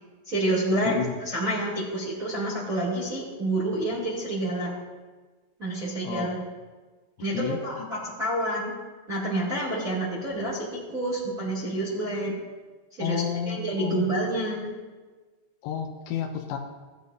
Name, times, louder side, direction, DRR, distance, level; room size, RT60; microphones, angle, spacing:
voice 1, 0.3-4.7 5.6-6.4 7.2-8.7 9.1-12.3 13.0-14.8, right 1 dB, 25° right, -6 dB, 1.9 m, -28 dB
voice 2, 6.0-6.3 7.3-7.6 13.0-14.1 15.6-16.6, left 8 dB, 85° left, 4 dB, 3.3 m, -30 dB
17.5 x 10.5 x 2.7 m, 1.3 s
omnidirectional pair, 5.7 m